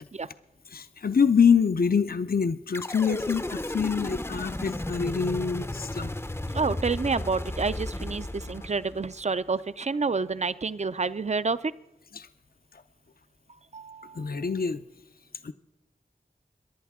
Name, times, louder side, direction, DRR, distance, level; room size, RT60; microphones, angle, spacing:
voice 1, 0.7-6.1 12.1-12.3 14.1-14.8 15.4-15.5, left 6 dB, 60° left, 11 dB, 0.5 m, -25 dB
sound 1, 2.7-9.2, left 1 dB, 15° left, 0.5 m, -34 dB
voice 2, 6.5-11.7 13.7-14.3, right 4 dB, 40° right, 16 dB, 0.4 m, -29 dB
22.5 x 11.0 x 3.6 m, 0.91 s
wide cardioid pair, 40°, 17 cm